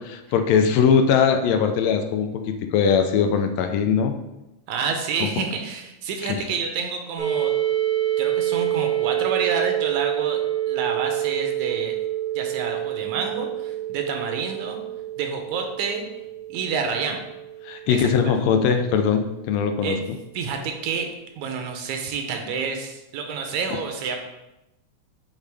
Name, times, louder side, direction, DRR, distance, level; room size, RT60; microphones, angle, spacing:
voice 1, 0.0-4.1 5.2-5.3 6.2-6.3 17.6-20.0, left 6 dB, 80° left, 6 dB, 1.7 m, -21 dB
voice 2, 4.7-7.5 8.2-10.4 10.7-12.0 12.3-14.8 15.2-16.0 16.5-17.2 17.9-18.1 19.8-20.0 20.3-21.1 21.4-24.2, right 5 dB, 80° right, 4 dB, 2.0 m, -28 dB
sound 1, 7.2-18.9, right 13 dB, 5° left, 0.3 m, -27 dB
8.1 x 3.7 x 3.4 m, 0.93 s
omnidirectional pair, 3.3 m